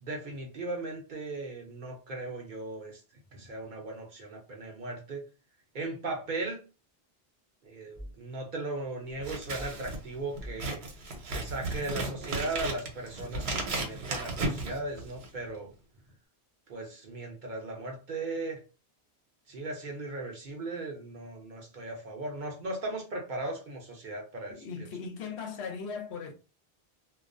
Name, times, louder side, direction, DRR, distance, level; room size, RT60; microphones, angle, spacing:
voice 1, 0.0-3.0 3.3-5.2 5.7-6.6 7.6-10.8 11.2-15.7 16.7-18.6 19.5-24.5, right 2 dB, 55° right, 0.6 m, -37 dB
sound 1, 8.0-8.3 9.5-9.9 10.4-10.7 11.3-11.7, equal, 20° left, 0.5 m, -45 dB
Scissors, 9.2-15.4, right 2 dB, 75° right, 1.0 m, -35 dB
voice 2, 24.5-26.3, left 5 dB, 75° left, 0.8 m, -38 dB
2.3 x 2.2 x 2.4 m
omnidirectional pair, 1.1 m